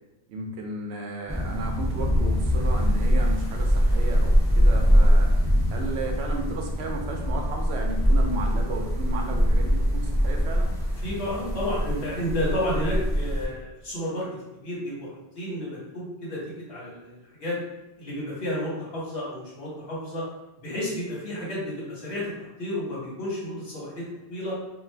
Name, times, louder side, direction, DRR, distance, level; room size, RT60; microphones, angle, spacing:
voice 1, 0.3-5.3 5.7-10.7, right 2 dB, 75° right, 2 dB, 0.8 m, -34 dB
sound 1, 1.3-13.4, equal, 5° left, 0.6 m, -23 dB
voice 2, 11.0-14.3 14.5-16.4 16.7-17.6 18.0-20.2 20.6-24.6, left 1 dB, 65° left, -6 dB, 1.4 m, -31 dB
2.4 x 2.4 x 3.2 m, 0.95 s
omnidirectional pair, 1.1 m